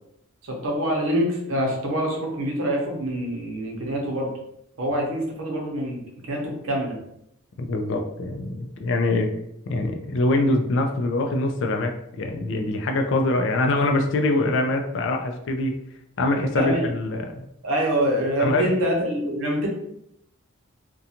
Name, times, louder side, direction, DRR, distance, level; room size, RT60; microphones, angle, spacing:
voice 1, 0.4-4.3 4.8-7.0 16.5-16.9 17.6-19.7, right 1 dB, 75° right, 0 dB, 0.7 m, -25 dB
voice 2, 7.6-9.3 9.7-15.7 16.2-17.5 18.4-18.9, left 2 dB, 60° left, 4 dB, 0.4 m, -24 dB
2.5 x 2.2 x 2.8 m, 0.76 s
head